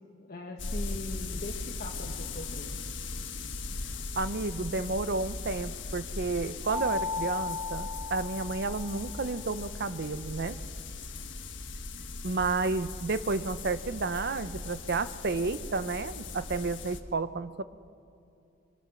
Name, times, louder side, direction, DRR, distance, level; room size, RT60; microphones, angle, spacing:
voice 1, 0.2-2.7, left 2 dB, 50° left, 1 dB, 1.5 m, -41 dB
sound 1, 0.6-17.0, left 3 dB, 70° left, 1.4 m, -39 dB
voice 2, 4.2-10.6 12.2-17.6, right 3 dB, 55° right, 14 dB, 0.7 m, -31 dB
Mallet percussion, 6.7-9.2, left 4 dB, 25° right, 1.8 m, -35 dB
24.0 x 24.0 x 6.4 m, 2.7 s
head